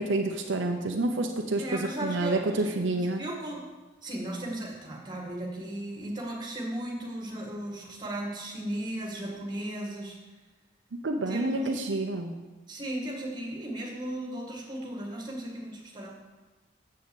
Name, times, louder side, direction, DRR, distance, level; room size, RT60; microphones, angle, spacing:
voice 1, 0.0-3.2 11.0-12.3, right 2 dB, 70° right, 3 dB, 0.7 m, -28 dB
voice 2, 1.6-3.7 4.0-10.2 11.3-11.7 12.7-16.1, right 1 dB, 20° right, -2 dB, 1.9 m, -36 dB
7.5 x 6.5 x 7.1 m, 1.2 s
head